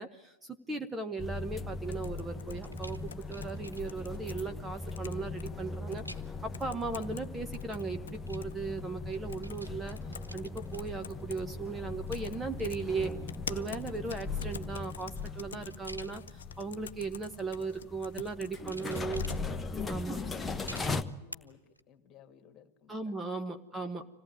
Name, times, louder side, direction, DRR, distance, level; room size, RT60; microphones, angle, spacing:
voice 1, 0.0-10.0 10.3-13.1 13.5-19.2 19.8-20.2 22.9-24.1, right 3 dB, 10° right, 6 dB, 1.1 m, -37 dB
sound 1, 1.2-21.0, left 3 dB, 10° left, 1.1 m, -39 dB
sound 2, 1.9-4.4 4.8-5.5 5.9-6.0 6.5-7.2 7.5-8.5 9.3-9.6 9.9-11.4 12.1-12.4 12.6-19.4, left 8 dB, 65° left, 0.7 m, -46 dB
sound 3, 2.5-4.6 6.0-6.5 7.6-8.9 9.1-11.6 12.0-13.0 13.5-16.7 17.4-17.8 18.5-19.8 20.7-21.3 21.8-21.9, equal, 90° left, 1.0 m, -52 dB
voice 2, 17.6-17.9 20.2-21.6 21.9-23.5 23.7-24.1, left 8 dB, 30° left, 7 dB, 2.2 m, -55 dB
26.0 x 17.5 x 9.1 m, 1.0 s
figure-of-eight pair, 90°, 0 cm